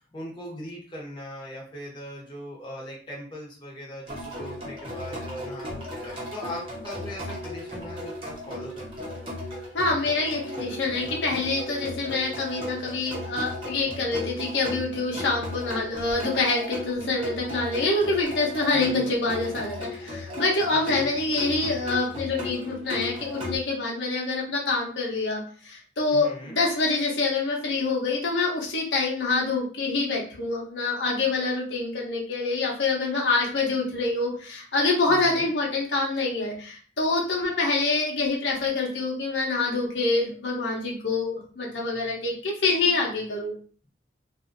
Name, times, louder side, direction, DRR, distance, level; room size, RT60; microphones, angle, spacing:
voice 1, 0.1-9.3 18.7-19.1 20.7-21.1 26.1-26.6 35.1-35.5, equal, 25° left, -3 dB, 0.8 m, -40 dB
sound 1, 4.1-23.6, left 1 dB, 30° right, 0.9 m, -36 dB
voice 2, 9.7-43.5, left 3 dB, 85° left, -3 dB, 0.9 m, -26 dB
2.6 x 2.5 x 2.5 m, 0.42 s
head